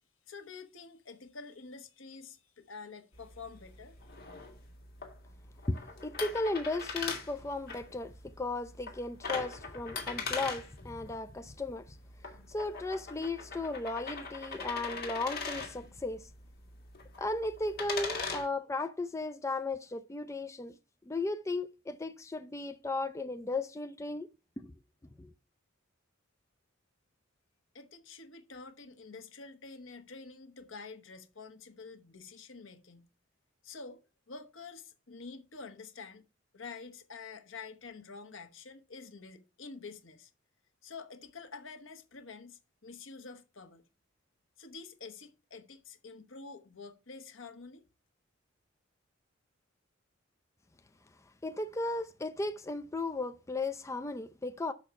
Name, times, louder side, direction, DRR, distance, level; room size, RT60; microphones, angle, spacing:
voice 1, 0.3-4.0 27.7-33.1 33.6-34.0 34.3-36.2 36.5-40.3 40.8-43.8 44.6-47.8, left 4 dB, 80° left, 1.3 m, -48 dB
sound 1, 3.1-18.5, left 4 dB, 50° left, 2.4 m, -41 dB
voice 2, 5.7-12.0 12.5-16.3 17.2-20.8 21.1-24.3 24.6-24.7 25.2-25.3 51.4-54.7, left 2 dB, 15° left, 0.4 m, -35 dB
6.5 x 5.9 x 6.8 m
head